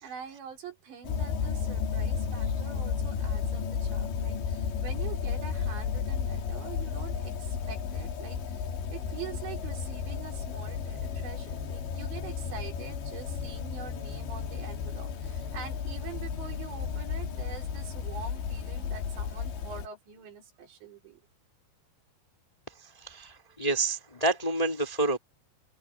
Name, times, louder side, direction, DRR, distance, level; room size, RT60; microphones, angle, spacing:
voice 1, 0.0-8.6 8.9-21.2, right 7 dB, 80° right, 6.4 m, -45 dB
sound 1, 1.0-19.9, left 6 dB, 80° left, 5.1 m, -33 dB
voice 2, 23.0-25.2, right 2 dB, 15° left, 1.7 m, -28 dB
open air
omnidirectional pair, 5.0 m